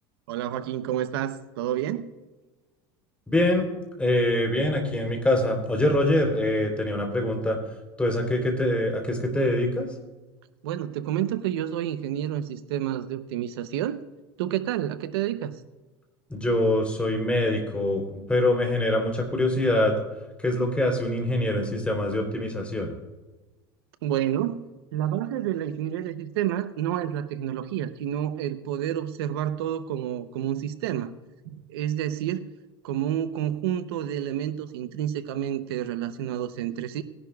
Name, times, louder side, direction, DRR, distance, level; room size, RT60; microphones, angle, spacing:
voice 1, 0.3-2.1 10.6-14.0 14.4-15.6 24.0-31.1 31.4-32.5 32.8-37.0, right 11 dB, 80° right, 12 dB, 0.7 m, -29 dB
voice 2, 3.3-3.7 4.0-7.6 8.0-9.9 16.3-20.0 20.4-22.9, left 1 dB, 10° left, 2 dB, 3.4 m, -24 dB
20.0 x 11.0 x 2.3 m, 1.2 s
supercardioid pair, 110°, 13 cm